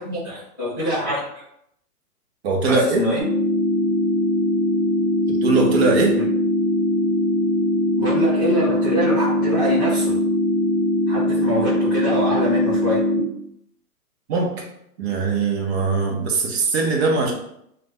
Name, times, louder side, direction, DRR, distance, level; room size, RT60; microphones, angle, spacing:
voice 1, 0.0-1.4 2.7-3.2 6.1-6.3 8.0-10.2 11.1-13.0, equal, 15° left, -15 dB, 0.3 m, -24 dB
voice 2, 2.4-3.0 5.4-6.2 14.3-14.6 15.0-17.3, right 4 dB, 40° right, 1 dB, 0.6 m, -20 dB
sound 1, 3.2-13.2, left 1 dB, 75° right, 1.1 m, -21 dB
2.4 x 2.1 x 3.3 m, 0.75 s
hypercardioid pair, 135°, 48 cm